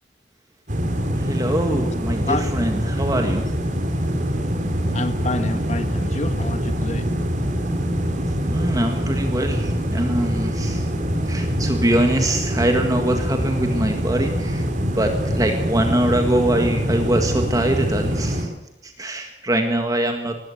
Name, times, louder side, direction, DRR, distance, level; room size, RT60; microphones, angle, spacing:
sound 1, 0.7-18.4, equal, 45° right, 3.5 m, -24 dB
voice 1, 1.2-3.5 8.5-10.9 11.3-18.5 18.8-20.4, right 1 dB, 20° right, 4 dB, 1.8 m, -23 dB
voice 2, 4.9-7.0, left 2 dB, 40° left, 9 dB, 1.7 m, -27 dB
20.0 x 16.0 x 8.1 m, 0.90 s
head